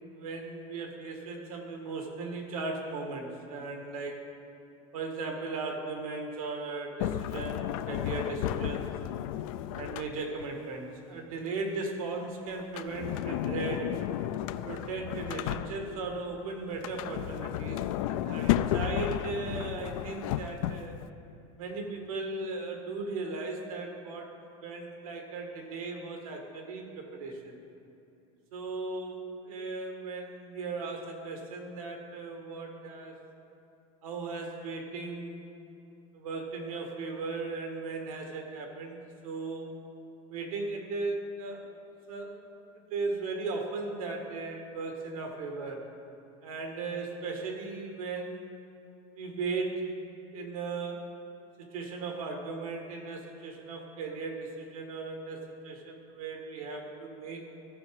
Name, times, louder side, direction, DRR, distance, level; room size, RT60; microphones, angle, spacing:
voice 1, 0.1-4.3 4.9-8.9 9.7-13.9 14.7-20.9 21.6-24.3 24.6-27.6 28.5-33.2 34.0-35.5 36.1-39.7 40.3-41.7 42.1-42.4 42.9-45.8 46.4-48.5 49.1-49.9 50.3-51.0 51.6-57.4, right 3 dB, 90° right, 2 dB, 1.8 m, -37 dB
Sliding door, 7.0-10.5 12.6-16.1 16.7-21.1, left 12 dB, 75° left, 0.4 m, -33 dB
14.5 x 4.9 x 4.8 m, 2.8 s
supercardioid pair, 130°, 18 cm